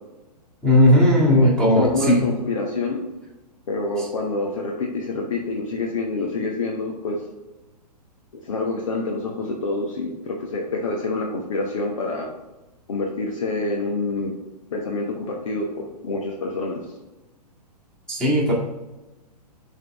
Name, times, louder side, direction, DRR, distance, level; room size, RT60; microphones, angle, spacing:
voice 1, 0.6-2.3 4.0-4.1 18.1-18.5, left 1 dB, 5° left, -8 dB, 1.9 m, -17 dB
voice 2, 1.3-3.0 3.7-7.2 8.3-12.3 12.9-14.3 14.7-16.8, left 3 dB, 50° left, 0 dB, 1.1 m, -27 dB
10.5 x 3.8 x 3.5 m, 1.1 s
figure-of-eight pair, 115°, 21 cm